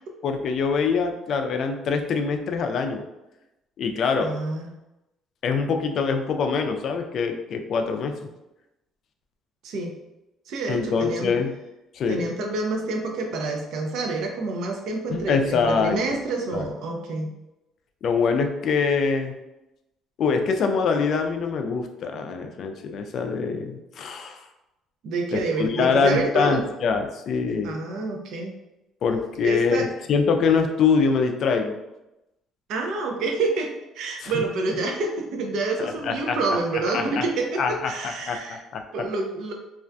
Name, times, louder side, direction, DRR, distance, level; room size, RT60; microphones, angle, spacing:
voice 1, 0.2-3.0 3.8-4.3 5.4-8.1 10.7-11.5 11.9-12.3 15.1-16.0 16.5-16.7 18.0-19.3 20.2-24.4 25.3-27.7 29.0-31.8 34.2-34.4 35.8-36.4 36.9-37.2 37.6-38.4 38.7-38.8, left 5 dB, 55° left, 5 dB, 0.3 m, -24 dB
voice 2, 4.2-4.7 9.6-9.9 10.5-11.3 12.1-17.3 25.0-26.6 27.6-28.5 29.4-29.9 32.7-38.6 38.9-39.5, right 3 dB, 70° right, 2 dB, 0.5 m, -28 dB
2.4 x 2.2 x 2.5 m, 0.95 s
cardioid pair, 120°, 0 cm